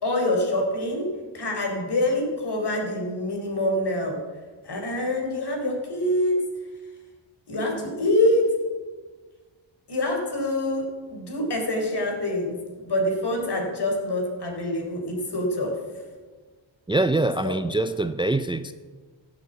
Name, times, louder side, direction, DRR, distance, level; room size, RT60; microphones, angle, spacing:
voice 1, 0.0-4.2 4.6-6.4 7.5-8.6 9.9-12.5 12.8-15.8 17.4-17.6, left 1 dB, 55° left, 1 dB, 4.2 m, -25 dB
voice 2, 16.9-18.7, right 2 dB, 10° right, 10 dB, 0.5 m, -24 dB
15.5 x 8.4 x 8.1 m, 1.4 s
wide cardioid pair, 100°, 46 cm